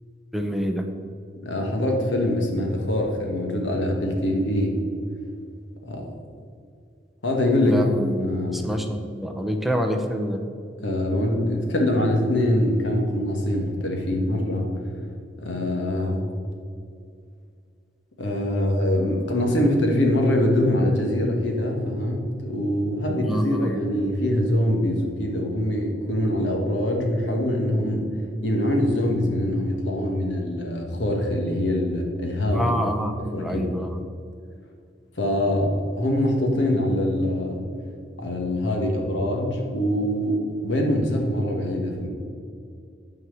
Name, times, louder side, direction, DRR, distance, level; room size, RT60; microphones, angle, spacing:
voice 1, 0.3-0.9 7.6-10.4 23.2-23.8 32.5-34.0, equal, ahead, 4 dB, 0.6 m, -27 dB
voice 2, 1.4-4.8 5.8-6.0 7.2-7.9 8.2-8.6 10.8-14.7 15.4-16.3 18.2-28.1 28.4-32.7 33.2-33.7 35.2-37.6 38.2-42.1, left 1 dB, 80° left, 1 dB, 1.6 m, -24 dB
9.7 x 4.7 x 7.1 m, 2.3 s
head